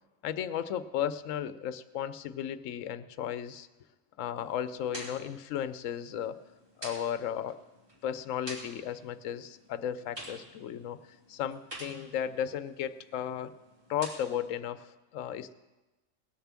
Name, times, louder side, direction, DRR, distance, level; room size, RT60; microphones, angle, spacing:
voice 1, 0.2-3.7 4.2-6.4 6.8-7.6 8.0-11.0 11.3-13.5 13.9-14.9 15.1-15.5, left 9 dB, 85° left, 14 dB, 1.0 m, -34 dB
sound 1, 4.4-14.5, right 1 dB, 45° right, 3.0 m, -49 dB
19.0 x 6.8 x 7.3 m, 1.1 s
omnidirectional pair, 1.3 m